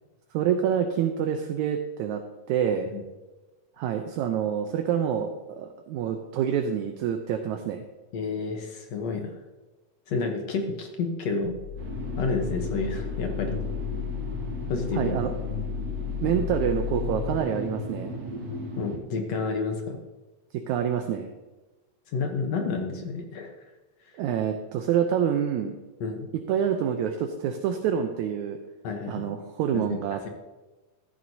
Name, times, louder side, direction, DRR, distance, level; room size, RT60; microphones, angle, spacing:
voice 1, 0.3-2.2 2.5-2.9 3.8-7.8 14.9-15.3 16.2-18.1 20.5-21.3 24.1-25.8 26.5-28.6 29.1-30.2, right 8 dB, 75° right, 5 dB, 1.9 m, -27 dB
voice 2, 8.1-9.3 10.1-11.6 12.2-13.6 14.7-15.2 18.8-20.0 22.1-23.5 26.0-26.3 28.8-29.3 29.7-30.0, left 4 dB, 65° left, 3 dB, 2.0 m, -30 dB
sound 1, 11.4-17.4, left 11 dB, 80° left, 1.1 m, -34 dB
sound 2, 11.8-19.0, equal, 55° right, 2.3 m, -36 dB
13.5 x 12.5 x 2.8 m, 1.1 s
omnidirectional pair, 3.8 m